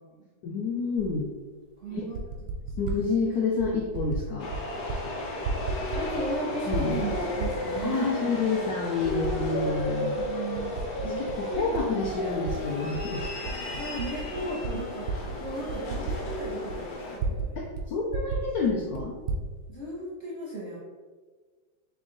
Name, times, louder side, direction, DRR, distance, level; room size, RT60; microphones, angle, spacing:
voice 1, 0.4-1.3 1.9-2.1 2.8-4.5 6.7-7.0 7.8-10.2 11.0-13.2 17.6-19.2, left 4 dB, 80° left, -1 dB, 0.8 m, -29 dB
Typing, 1.0-1.1 1.9-3.0 3.6-4.2 4.5-5.0 5.3-6.4 6.7-7.9 8.4-8.5 9.0-9.9 10.2-12.6 12.9-17.5 17.7-17.8 18.1-19.4, right 4 dB, 85° right, 1.4 m, -33 dB
voice 2, 1.8-2.2 2.7-2.8 5.9-8.2 9.9-12.0 13.8-15.1 15.4-17.7 19.7-20.8, right 1 dB, 60° right, -6 dB, 0.7 m, -36 dB
sound 1, 4.4-17.2, left 2 dB, 55° left, 1.2 m, -33 dB
3.6 x 3.0 x 3.7 m, 1.4 s
omnidirectional pair, 2.1 m